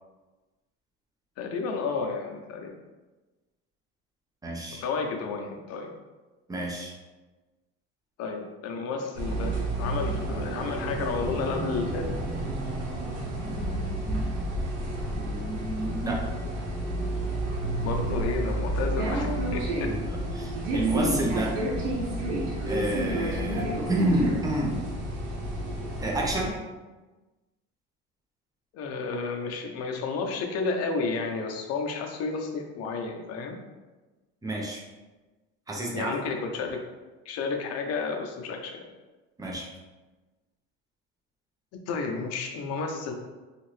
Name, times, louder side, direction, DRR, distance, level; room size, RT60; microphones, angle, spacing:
voice 1, 1.4-2.7 4.8-5.9 8.2-12.1 17.8-19.9 28.7-33.6 35.9-36.8 37.3-38.9 41.9-43.1, left 4 dB, 60° left, 3 dB, 0.6 m, -31 dB
voice 2, 4.4-4.8 6.5-6.9 14.0-14.2 15.1-16.2 19.8-21.6 22.6-24.8 26.0-26.6 34.4-34.8 35.7-36.2 39.4-39.7, right 1 dB, 10° right, -2 dB, 0.7 m, -29 dB
sound 1, 9.2-26.5, right 1 dB, 70° right, 0.9 m, -30 dB
2.7 x 2.5 x 3.2 m, 1.2 s
supercardioid pair, 105°, 29 cm